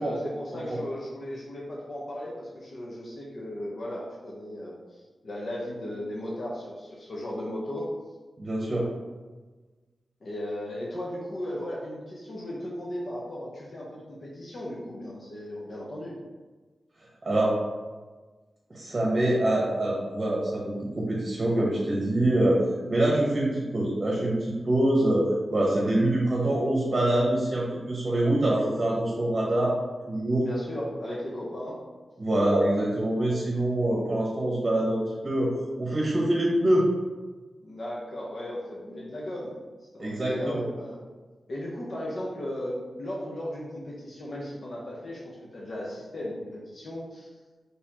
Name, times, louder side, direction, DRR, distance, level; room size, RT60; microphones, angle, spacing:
voice 1, 0.0-4.7 5.2-7.9 10.2-16.1 30.4-31.8 37.6-39.6 39.9-41.0 41.5-47.3, left 1 dB, 60° left, -5 dB, 0.9 m, -36 dB
voice 2, 8.4-8.9 17.2-17.6 18.7-22.6 22.9-29.8 30.1-30.5 32.2-35.5 35.8-36.9 40.0-40.7, right 1 dB, 40° right, -3 dB, 0.9 m, -25 dB
4.1 x 3.4 x 2.9 m, 1.3 s
cardioid pair, 75°, 0 cm